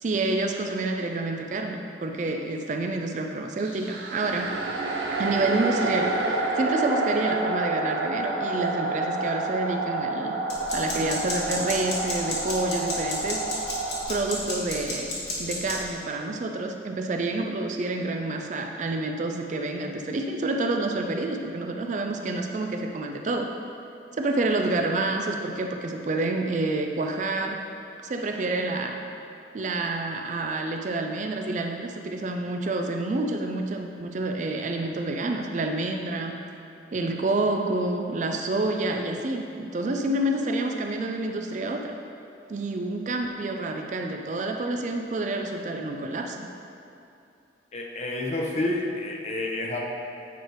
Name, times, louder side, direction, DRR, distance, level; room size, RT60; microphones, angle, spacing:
voice 1, 0.0-4.5 5.2-10.4 10.7-13.6 14.1-23.5 24.2-27.7 28.0-29.0 29.5-36.4 36.9-42.0 42.5-46.5, right 2 dB, 40° right, 3 dB, 0.4 m, -28 dB
sound 1, 3.6-14.1, right 2 dB, 85° right, 0.7 m, -29 dB
sound 2, 10.5-15.8, left 2 dB, 60° left, 1.5 m, -32 dB
voice 2, 47.7-49.8, left 2 dB, 35° left, -1 dB, 0.7 m, -29 dB
9.0 x 3.3 x 4.5 m, 2.6 s
head